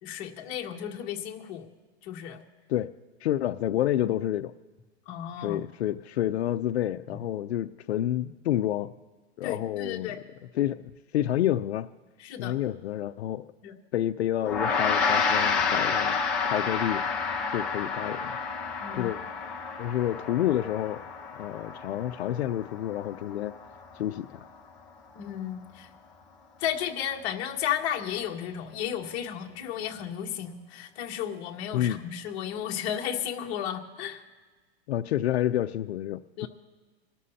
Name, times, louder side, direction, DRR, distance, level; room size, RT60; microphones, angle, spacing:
voice 1, 0.0-1.7 2.0-2.4 5.1-5.6 9.4-10.2 12.2-12.5 13.6-13.7 18.8-19.1 25.1-25.9 26.6-34.2 36.4-36.5, left 9 dB, 30° left, 0 dB, 1.4 m, -33 dB
voice 2, 3.2-4.5 5.4-8.9 9.4-10.2 10.5-11.9 12.4-13.4 13.9-16.2 16.4-17.0 17.5-18.3 18.9-19.2 19.8-21.0 21.3-23.6 23.9-24.5 31.7-32.0 34.9-36.5, left 12 dB, 75° left, 9 dB, 0.6 m, -29 dB
Gong, 14.4-24.0, left 5 dB, 5° left, 0.4 m, -29 dB
27.0 x 13.0 x 2.8 m, 1.4 s
supercardioid pair, 170°, 33 cm